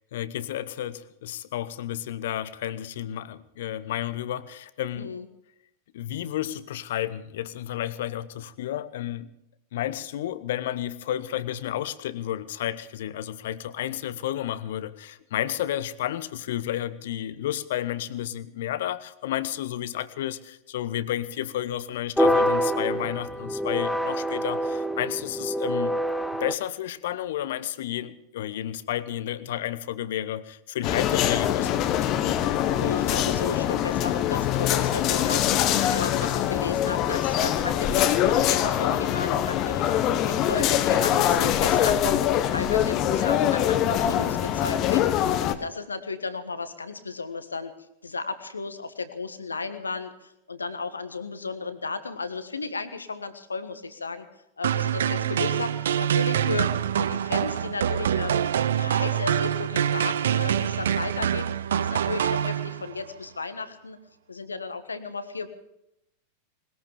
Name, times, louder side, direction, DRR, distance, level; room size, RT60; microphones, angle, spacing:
voice 1, 0.1-5.1 5.9-9.3 9.7-26.0 26.4-31.8, left 12 dB, 55° left, 16 dB, 0.9 m, -31 dB
voice 2, 4.9-5.2 32.7-47.7 48.0-54.3 54.6-58.4 58.7-61.5 61.8-64.0 64.3-65.5, left 4 dB, 75° left, 11 dB, 1.4 m, -34 dB
sound 1, 22.2-26.5, equal, ahead, 0.8 m, -26 dB
sound 2, 30.8-45.5, left 11 dB, 40° left, 1.2 m, -23 dB
sound 3, 54.6-63.0, right 9 dB, 65° right, 0.6 m, -25 dB
20.5 x 20.0 x 3.4 m, 0.81 s
figure-of-eight pair, 90°, 0 cm